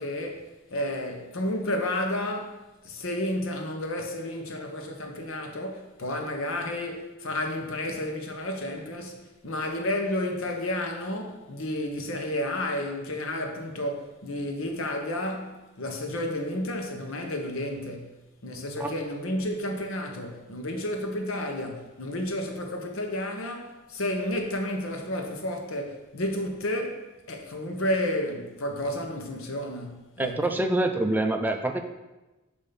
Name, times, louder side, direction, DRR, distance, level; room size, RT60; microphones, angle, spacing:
voice 1, 0.0-30.5, left 1 dB, 75° left, 0.9 m, -31 dB
voice 2, 30.2-31.8, right 2 dB, 10° right, 0.4 m, -26 dB
6.6 x 2.7 x 5.7 m
head